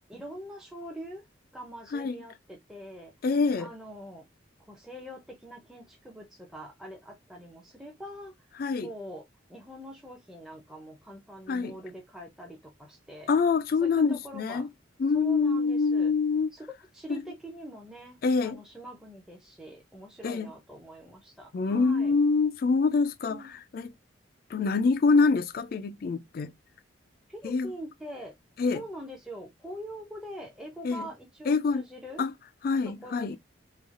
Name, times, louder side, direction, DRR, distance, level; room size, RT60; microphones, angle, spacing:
voice 1, 0.1-1.2 1.5-3.1 3.6-4.3 4.7-8.3 8.8-9.2 9.5-13.3 13.8-14.7 15.1-16.1 16.5-16.7 16.9-22.1 23.3-23.6 27.3-28.4 28.7-32.2 32.9-33.4, equal, 5° right, 0.5 m, -43 dB
voice 2, 3.2-3.7 8.6-8.9 11.5-11.8 13.3-14.7 15.0-16.5 17.1-17.2 18.2-18.6 20.2-20.5 21.5-23.9 24.5-26.5 27.4-27.7 28.6-28.8 30.8-31.1 31.5-31.9 32.2-32.3 32.6-33.4, left 4 dB, 50° left, 0.3 m, -25 dB
3.0 x 2.3 x 2.4 m
head